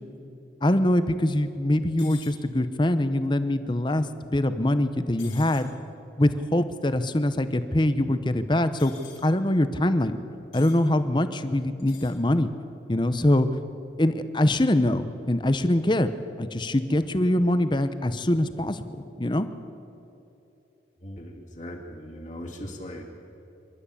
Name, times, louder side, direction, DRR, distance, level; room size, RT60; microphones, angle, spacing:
voice 1, 0.6-5.7 6.2-8.9 9.2-10.2 10.5-12.5 12.9-13.5 14.0-16.1 16.4-19.5, left 1 dB, 25° left, 11 dB, 0.8 m, -23 dB
sound 1, 2.0-2.4 5.2-5.7 8.8-9.2 10.5-10.8 11.8-12.2, left 8 dB, 90° left, 5.4 m, -46 dB
voice 2, 21.0-23.0, equal, 40° left, -2 dB, 2.5 m, -39 dB
26.0 x 12.5 x 8.4 m, 2.9 s
head